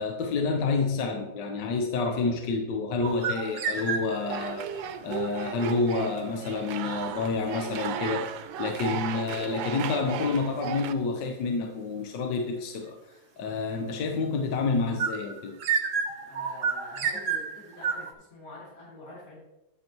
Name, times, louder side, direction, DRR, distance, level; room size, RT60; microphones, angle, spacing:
voice 1, 0.0-8.3 8.6-13.0 13.4-15.6, left 4 dB, 70° left, 3 dB, 1.4 m, -29 dB
sound 1, 3.0-4.4 15.0-18.1, right 6 dB, 55° right, 0.9 m, -30 dB
sound 2, 4.3-10.9, right 9 dB, 85° right, 1.3 m, -35 dB
voice 2, 16.1-19.4, left 2 dB, 45° left, -6 dB, 3.2 m, -46 dB
9.5 x 7.8 x 3.0 m, 0.95 s
omnidirectional pair, 2.1 m